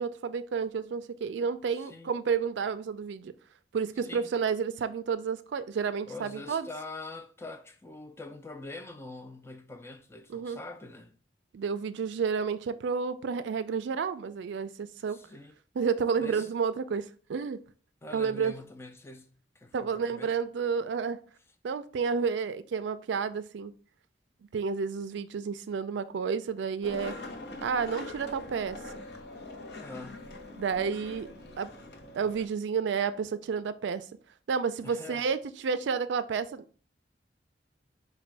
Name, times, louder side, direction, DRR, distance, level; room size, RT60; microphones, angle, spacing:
voice 1, 0.0-3.3 3.7-6.7 10.3-10.6 11.5-15.2 15.8-17.6 18.1-18.5 19.7-21.2 21.6-23.7 24.5-27.2 27.6-29.0 30.6-31.3 31.6-31.7 32.1-34.0 34.5-36.6, right 6 dB, 80° right, 0.3 m, -31 dB
voice 2, 1.8-2.1 4.0-4.3 6.1-11.2 15.1-15.6 16.2-16.5 18.0-19.3 19.6-20.4 29.7-30.3 34.8-35.3, left 2 dB, 15° left, 0.3 m, -44 dB
Skateboard, 26.8-32.5, left 2 dB, 65° left, 0.6 m, -43 dB
4.2 x 2.2 x 4.6 m
head